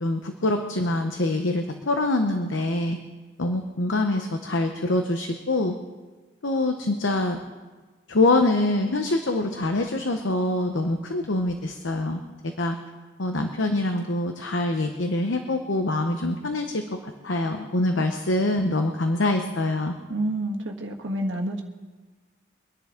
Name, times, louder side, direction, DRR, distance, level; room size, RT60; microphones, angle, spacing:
voice 1, 0.0-3.0 3.4-5.7 6.4-7.4 8.1-12.8 13.2-19.9, left 2 dB, 90° left, 5 dB, 0.9 m, -25 dB
voice 2, 20.1-21.6, right 1 dB, 85° right, 1 dB, 1.5 m, -28 dB
24.5 x 10.5 x 3.8 m, 1.4 s
head